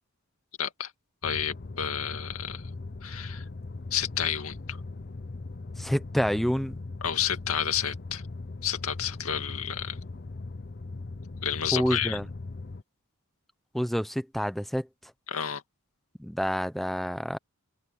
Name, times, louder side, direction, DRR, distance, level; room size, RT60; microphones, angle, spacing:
voice 1, 0.6-0.9 1.2-2.6 3.0-3.4 3.9-4.8 7.0-8.2 8.6-10.0 11.4-12.2 15.3-15.6, left 9 dB, 90° left, 2.2 m, -30 dB
sound 1, 1.2-12.8, left 3 dB, 45° left, 0.7 m, -39 dB
voice 2, 5.8-6.8 11.7-12.3 13.7-14.9 16.2-17.4, equal, ahead, 0.8 m, -28 dB
head